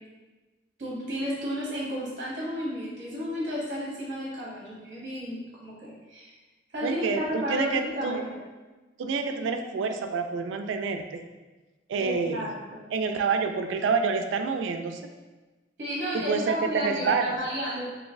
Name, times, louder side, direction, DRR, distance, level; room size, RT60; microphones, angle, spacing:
voice 1, 0.8-6.3 6.7-8.4 12.0-12.8 15.8-17.9, equal, 40° right, -5 dB, 0.7 m, -32 dB
voice 2, 6.8-8.2 9.0-11.2 11.9-12.5 12.9-15.1 16.1-17.4, right 5 dB, 75° right, 6 dB, 0.3 m, -28 dB
3.8 x 2.7 x 2.5 m, 1.2 s
head